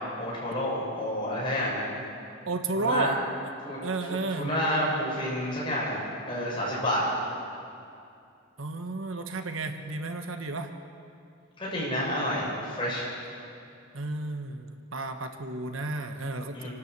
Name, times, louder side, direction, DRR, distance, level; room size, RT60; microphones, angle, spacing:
voice 1, 0.2-1.8 2.7-3.1 3.6-3.8 4.1-6.0 6.3-7.0 11.6-12.5 12.8-13.1 16.5-16.7, equal, 25° left, -6 dB, 7.1 m, -29 dB
voice 2, 2.5-3.2 3.8-4.5 8.6-10.7 13.9-16.7, right 3 dB, 85° right, 7 dB, 1.3 m, -32 dB
27.5 x 12.5 x 8.2 m, 2.5 s
head